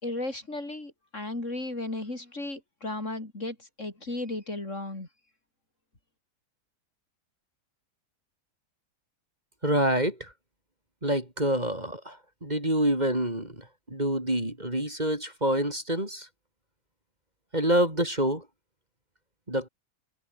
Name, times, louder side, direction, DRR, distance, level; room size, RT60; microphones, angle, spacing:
voice 1, 0.0-5.1, left 2 dB, 45° left, 5.1 m, -35 dB
voice 2, 9.6-10.3 11.0-16.3 17.5-18.5 19.5-19.7, right 1 dB, 25° right, 5.3 m, -27 dB
omnidirectional pair, 1.7 m